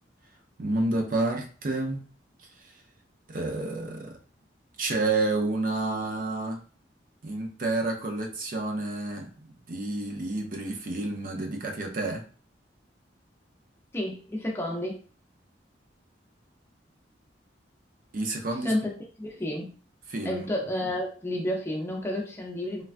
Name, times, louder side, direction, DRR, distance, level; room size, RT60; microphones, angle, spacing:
voice 1, 0.6-2.0 2.4-2.8 3.3-4.2 4.8-6.6 7.2-9.3 9.7-12.2 18.1-18.8 20.1-20.5, right 2 dB, 50° right, 2 dB, 0.4 m, -29 dB
voice 2, 13.9-15.0 18.6-19.7 20.2-22.8, left 1 dB, 15° left, -1 dB, 0.5 m, -31 dB
3.2 x 2.3 x 2.4 m, 0.39 s
head